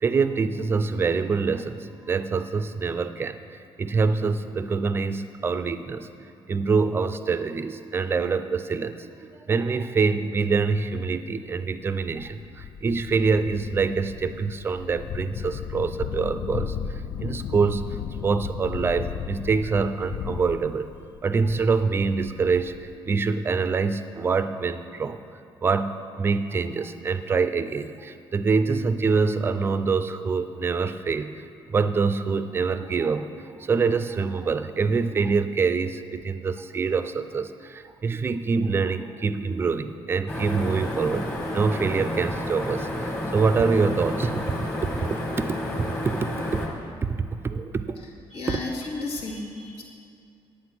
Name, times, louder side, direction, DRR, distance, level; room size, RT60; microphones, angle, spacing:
voice 1, 0.0-3.4 3.8-6.1 6.5-9.1 9.5-16.8 17.2-18.0 18.2-20.9 21.2-22.7 23.1-25.2 25.6-31.4 31.7-44.4 44.8-45.6 46.0-46.3 47.0-48.0 48.5-48.6, right 4 dB, 25° right, 11 dB, 0.4 m, -25 dB
sound 1, 10.7-10.8 11.5-11.6 11.9-22.9, left 8 dB, 55° left, 0.3 m, -35 dB
sound 2, 40.3-46.7, left 1 dB, 20° left, 1.5 m, -30 dB
voice 2, 48.3-49.8, left 3 dB, 90° left, -2 dB, 2.0 m, -33 dB
9.6 x 8.6 x 5.9 m, 2.5 s
cardioid pair, 170°, 10 cm